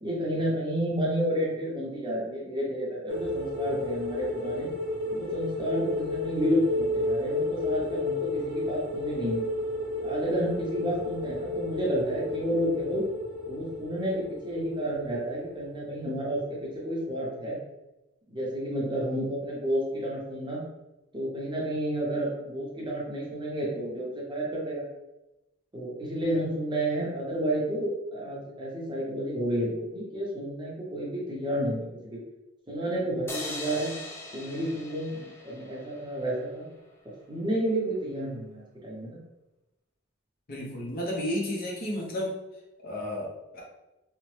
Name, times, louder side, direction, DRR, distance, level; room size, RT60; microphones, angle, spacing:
voice 1, 0.0-4.7 5.1-9.5 10.0-13.0 13.5-17.6 18.3-20.6 21.1-24.8 25.7-32.2 32.7-33.9 34.3-36.7 37.3-39.2, right 1 dB, 25° right, -4 dB, 0.6 m, -30 dB
sound 1, 3.1-16.5 16.8-17.0, left 2 dB, 80° right, 0.5 m, -32 dB
sound 2, 33.3-36.6, left 2 dB, 10° left, 0.3 m, -41 dB
voice 2, 40.5-42.4 42.8-43.6, left 1 dB, 45° left, -2 dB, 0.7 m, -32 dB
2.8 x 2.1 x 3.1 m, 0.98 s
head